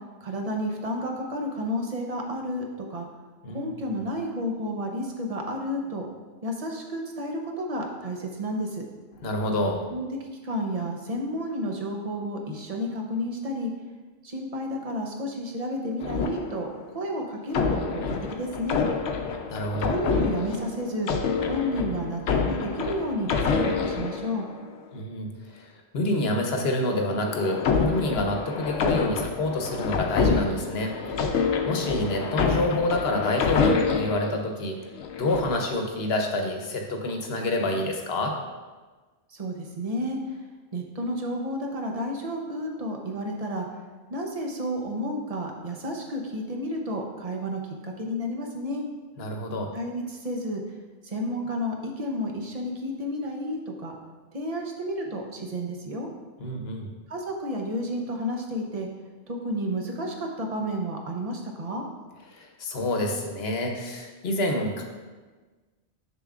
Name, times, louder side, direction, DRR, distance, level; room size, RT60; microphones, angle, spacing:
voice 1, 0.2-3.1 3.5-6.1 6.4-8.8 9.9-13.7 14.2-16.7 16.9-18.8 19.8-21.1 21.5-24.4 39.3-40.4 40.7-43.7 44.1-48.8 49.7-50.6 51.0-53.9 54.3-56.1 57.1-58.9 59.3-61.8, equal, 35° right, 1 dB, 0.8 m, -31 dB
voice 2, 9.2-9.9 19.5-19.9 24.9-34.8 35.2-38.4 49.2-49.7 56.4-56.9 62.3-64.8, left 1 dB, 65° left, 3 dB, 1.0 m, -28 dB
sound 1, 16.0-16.9 17.5-24.8 26.7-34.3 34.9-35.7, left 5 dB, 90° left, 0.9 m, -27 dB
7.0 x 6.8 x 2.4 m, 1.3 s
omnidirectional pair, 1.1 m